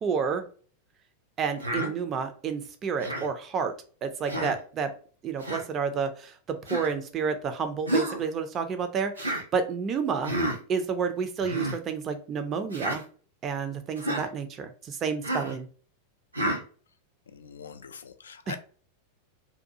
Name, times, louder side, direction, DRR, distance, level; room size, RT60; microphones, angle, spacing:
voice 1, 0.0-0.4 1.4-3.7 4.0-4.9 5.2-10.3 10.7-13.0 13.4-15.7, right 6 dB, 30° right, 8 dB, 0.4 m, -30 dB
Human voice, 1.6-1.9 3.0-3.3 4.3-4.6 5.4-5.6 6.7-6.9 7.9-8.2 9.2-9.4 10.2-10.6 11.4-11.8 12.7-13.0 14.0-14.3 15.2-15.5 16.3-16.6, right 1 dB, 80° right, 0.7 m, -30 dB
voice 2, 17.3-18.6, left 6 dB, 70° left, 10 dB, 0.3 m, -42 dB
2.7 x 2.3 x 2.6 m, 0.42 s
figure-of-eight pair, 90°, 0 cm